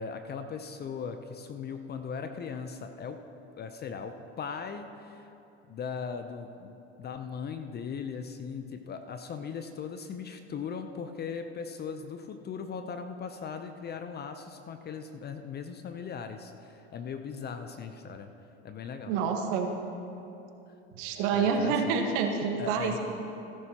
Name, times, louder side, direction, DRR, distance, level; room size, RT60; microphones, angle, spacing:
voice 1, 0.0-3.2 3.6-5.3 5.7-18.3 18.6-19.1 21.3-22.0 22.6-23.0, left 6 dB, 30° left, 8 dB, 0.6 m, -39 dB
voice 2, 19.0-19.7 20.9-23.0, right 5 dB, 60° right, 4 dB, 1.5 m, -28 dB
17.0 x 10.5 x 2.9 m, 2.8 s
hypercardioid pair, 90°, 34 cm